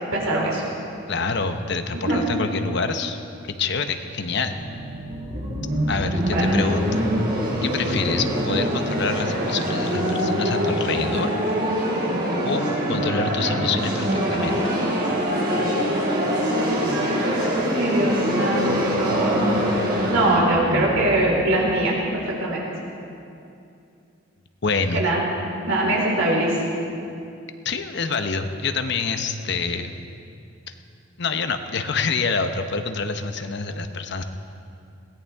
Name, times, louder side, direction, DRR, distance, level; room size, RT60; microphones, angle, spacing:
voice 1, 0.1-0.6 2.1-2.2 6.1-6.5 17.7-19.6 20.1-22.6 24.9-25.3 25.7-26.6, right 1 dB, 90° right, -3 dB, 4.6 m, -22 dB
voice 2, 1.1-3.2 3.6-4.6 5.9-7.0 7.6-11.3 12.4-12.6 12.9-14.6 24.6-25.0 27.6-29.9 31.2-34.2, left 4 dB, 55° left, 7 dB, 0.9 m, -26 dB
sound 1, 4.3-22.1, equal, 45° right, 4.4 m, -24 dB
22.0 x 17.5 x 3.6 m, 2.6 s
head